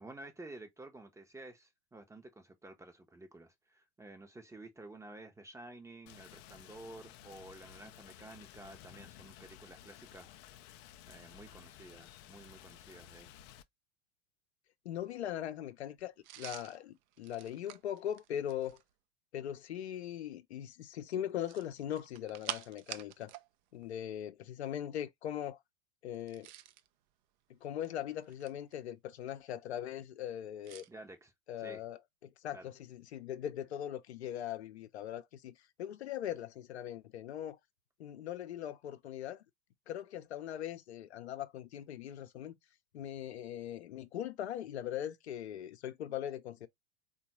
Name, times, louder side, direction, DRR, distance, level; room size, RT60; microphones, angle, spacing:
voice 1, 0.0-13.3 30.9-31.3 31.6-31.8 32.5-32.7, right 2 dB, 10° right, 0.7 m, -52 dB
Rain, 6.1-13.6, left 12 dB, 35° left, 0.4 m, -55 dB
voice 2, 14.8-18.8 19.3-23.3 23.7-25.6 26.0-26.5 27.5-30.8 31.5-37.6 38.0-39.4 39.9-42.5 42.9-46.7, left 10 dB, 70° left, 0.7 m, -40 dB
sound 1, 16.2-18.9 21.3-23.5 23.7-23.9 26.1-26.9 27.6-28.7 30.6-30.9, right 13 dB, 45° right, 0.4 m, -47 dB
3.7 x 2.3 x 2.9 m
hypercardioid pair, 95°, 34 cm